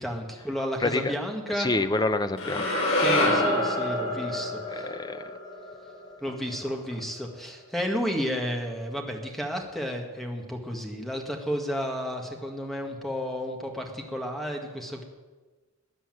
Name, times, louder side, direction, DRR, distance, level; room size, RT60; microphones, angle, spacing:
voice 1, 0.0-1.7 3.0-4.9 6.2-15.1, equal, ahead, 2 dB, 1.9 m, -32 dB
voice 2, 0.8-1.1 1.6-2.7 4.7-5.3, left 2 dB, 20° left, 10 dB, 0.8 m, -27 dB
sound 1, 2.4-6.6, left 1 dB, 75° left, 5.5 m, -27 dB
14.0 x 9.9 x 9.3 m, 1.3 s
head